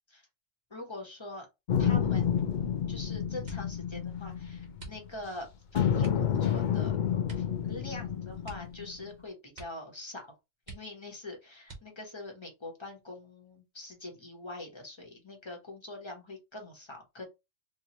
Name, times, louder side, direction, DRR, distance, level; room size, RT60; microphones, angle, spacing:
voice 1, 0.7-1.5 1.8-2.4 2.9-6.9 7.3-10.2 10.7-17.3, left 2 dB, 25° left, 1 dB, 1.0 m, -44 dB
sound 1, 1.7-5.3 5.7-9.1, left 8 dB, 65° left, 0.4 m, -30 dB
sound 2, 3.4-3.8 4.7-5.4 6.0-6.3 7.2-7.6 7.8-7.9 8.4-9.2 9.5-9.9 10.2-10.3 10.6-11.2 11.6-12.2 12.9-13.5 13.9-14.3, right 4 dB, 35° right, 1.1 m, -48 dB
4.4 x 2.3 x 2.9 m, 0.24 s
omnidirectional pair, 1.3 m